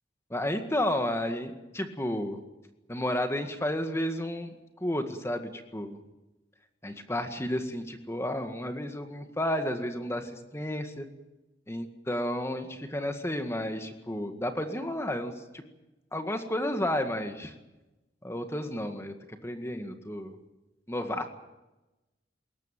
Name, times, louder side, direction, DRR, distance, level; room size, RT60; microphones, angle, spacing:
voice 1, 0.3-2.4 2.9-6.0 6.8-11.1 11.7-15.6 16.1-17.5 18.2-19.1 19.4-20.3 20.9-21.3, left 1 dB, 15° left, 6 dB, 1.9 m, -32 dB
21.5 x 18.0 x 9.2 m, 1.0 s
head